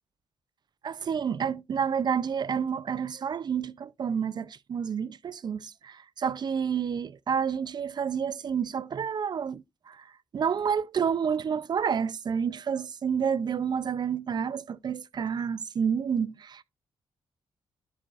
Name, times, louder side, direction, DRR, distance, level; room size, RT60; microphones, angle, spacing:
voice 1, 0.8-16.6, right 7 dB, 45° right, 0.4 m, -29 dB
11.0 x 5.3 x 2.4 m
cardioid pair, 95°, 10 cm